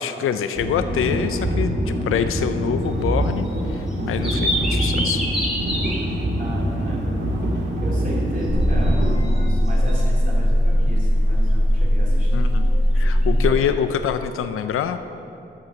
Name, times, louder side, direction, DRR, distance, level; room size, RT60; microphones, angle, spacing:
voice 1, 0.0-5.2 12.3-15.0, left 8 dB, 85° left, 10 dB, 0.4 m, -25 dB
sound 1, 0.6-9.2, equal, 60° right, 2.0 m, -24 dB
sound 2, 3.0-3.5 3.9-6.0 6.3-6.4 8.6-8.9 9.2-9.9 13.2-13.3, equal, ahead, 2.3 m, -27 dB
voice 2, 6.4-12.5 13.0-13.6, right 1 dB, 40° right, -6 dB, 2.6 m, -34 dB
sound 3, 8.5-13.5, equal, 30° left, 1.2 m, -19 dB
11.5 x 4.5 x 7.1 m, 2.8 s
cardioid pair, 80°, 21 cm